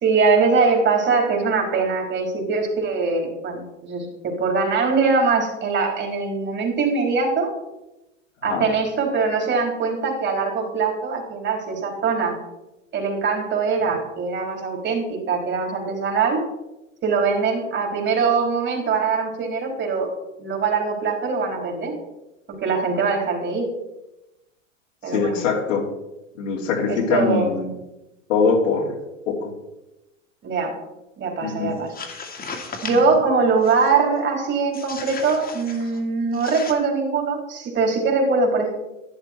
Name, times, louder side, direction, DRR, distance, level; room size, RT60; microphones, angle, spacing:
voice 1, 0.0-7.5 8.4-12.4 12.9-16.4 17.0-20.1 20.4-21.9 22.5-23.7 25.0-25.4 26.9-27.5 30.4-30.7 31.2-31.9 32.8-38.7, right 4 dB, 30° right, 1 dB, 4.0 m, -22 dB
voice 2, 25.1-25.9 26.4-27.7 28.3-28.9 29.3-29.5 31.4-31.7, left 5 dB, 75° left, -1 dB, 2.9 m, -22 dB
sound 1, 31.8-33.1 33.6-34.0 34.7-36.0 36.3-36.7, left 4 dB, 25° left, 2.3 m, -36 dB
11.5 x 11.0 x 4.5 m, 0.95 s
hypercardioid pair, 105°, 39 cm